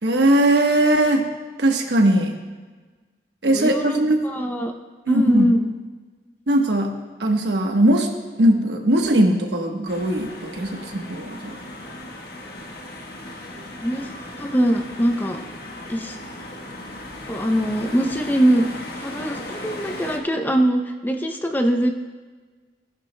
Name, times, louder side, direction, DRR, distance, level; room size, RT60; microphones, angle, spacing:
voice 1, 0.0-1.3 1.6-2.3 3.4-4.2 5.1-5.5 6.5-6.9 7.2-8.1 8.3-11.6, right 1 dB, 75° right, 3 dB, 1.1 m, -19 dB
voice 2, 3.4-4.7 5.1-5.7 13.8-14.1 14.4-15.4 15.9-16.2 17.3-18.7 19.0-21.9, equal, 10° left, 4 dB, 0.5 m, -22 dB
sound 1, 9.9-20.2, left 1 dB, 55° left, 1.2 m, -37 dB
16.5 x 11.0 x 2.2 m, 1.4 s
head